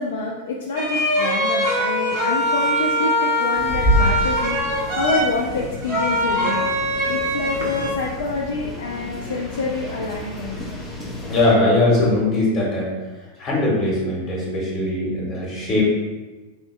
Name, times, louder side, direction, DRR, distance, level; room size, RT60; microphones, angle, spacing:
voice 1, 0.0-6.6 7.1-10.6 12.0-12.1, left 3 dB, 60° left, -1 dB, 0.4 m, -27 dB
sound 1, 0.8-7.9, equal, 50° right, 0.9 m, -22 dB
sound 2, 3.5-11.5, equal, 5° left, 0.9 m, -28 dB
voice 2, 11.3-12.9 13.4-15.8, left 2 dB, 30° left, -4 dB, 1.4 m, -20 dB
3.5 x 2.7 x 3.2 m, 1.2 s
figure-of-eight pair, 90°, 0 cm